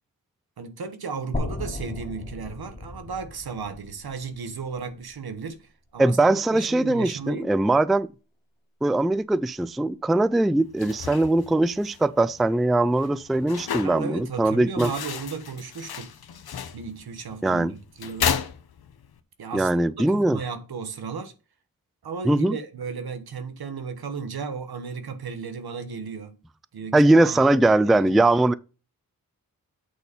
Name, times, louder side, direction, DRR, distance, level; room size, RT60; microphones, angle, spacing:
voice 1, 0.6-7.5 13.8-16.1 16.7-18.4 19.4-21.3 22.0-26.4 26.7-28.2, right 5 dB, 75° right, 1.2 m, -35 dB
sound 1, 1.3-5.4, left 2 dB, 20° left, 2.1 m, -35 dB
voice 2, 6.0-8.1 8.8-14.9 17.4-17.7 19.5-20.4 22.3-22.6 26.9-28.5, right 2 dB, ahead, 0.3 m, -21 dB
sound 2, 10.6-19.2, left 8 dB, 75° left, 0.9 m, -34 dB
8.3 x 4.1 x 5.2 m
wide cardioid pair, 70°, 37 cm